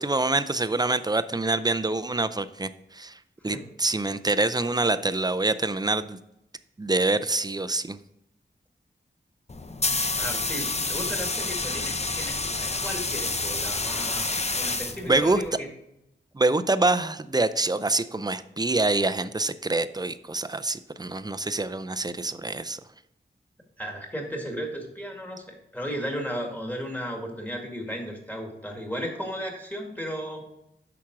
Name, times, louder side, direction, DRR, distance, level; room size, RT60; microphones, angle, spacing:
voice 1, 0.0-3.2 3.4-6.2 6.8-8.0 15.1-15.4 16.3-22.8, right 2 dB, 20° right, 12 dB, 0.5 m, -25 dB
sound 1, 9.5-15.5, left 3 dB, 35° left, 0.7 m, -29 dB
voice 2, 10.2-15.7 23.8-30.5, equal, 10° left, 1 dB, 2.1 m, -35 dB
8.6 x 6.0 x 4.7 m, 0.85 s
wide cardioid pair, 80°, 20 cm